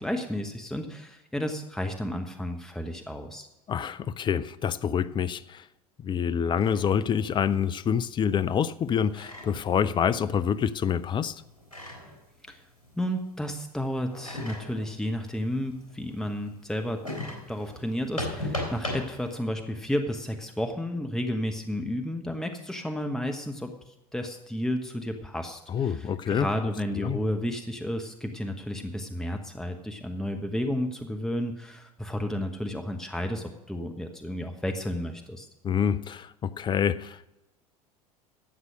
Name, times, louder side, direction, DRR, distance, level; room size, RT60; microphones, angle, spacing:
voice 1, 0.0-3.5 12.5-12.6 13.0-17.0 17.5-35.5, equal, ahead, 1.1 m, -32 dB
voice 2, 3.7-5.6 6.0-11.4 25.7-26.5 27.0-27.2 35.6-37.4, left 8 dB, 25° left, 0.5 m, -27 dB
sound 1, 6.6-13.4 13.6-19.4, left 1 dB, 80° left, 3.6 m, -39 dB
12.5 x 8.1 x 6.3 m
figure-of-eight pair, 75°, 19 cm